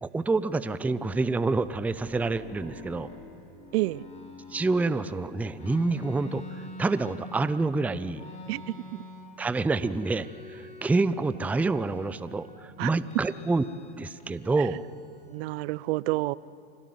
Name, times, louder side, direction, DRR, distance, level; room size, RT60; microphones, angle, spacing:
voice 1, 0.0-3.1 4.5-8.2 9.4-13.7 14.0-14.8, right 3 dB, 5° right, 14 dB, 0.5 m, -27 dB
sound 1, 1.5-5.1 5.5-7.6 8.1-9.4 9.7-11.0 11.3-12.5 13.1-13.9 14.2-15.4, left 1 dB, 20° left, 5.4 m, -46 dB
voice 2, 3.7-4.0 8.5-8.6 8.9-9.0 12.8-12.9 14.6-14.7 15.3-16.3, right 20 dB, 65° right, 21 dB, 0.6 m, -29 dB
25.5 x 17.5 x 9.3 m, 2.5 s
supercardioid pair, 125°, 33 cm